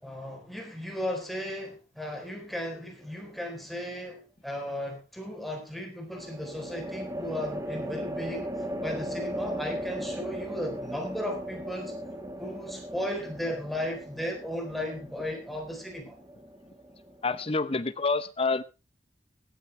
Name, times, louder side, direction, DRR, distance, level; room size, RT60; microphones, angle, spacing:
voice 1, 0.0-8.5 8.8-11.9 12.4-16.2, left 1 dB, ahead, 2 dB, 3.9 m, -35 dB
sound 1, 3.0-3.6 6.1-17.5, equal, 20° right, 1.6 m, -38 dB
voice 2, 17.2-18.6, left 3 dB, 35° left, 13 dB, 0.9 m, -27 dB
16.5 x 12.5 x 3.4 m, 0.29 s
head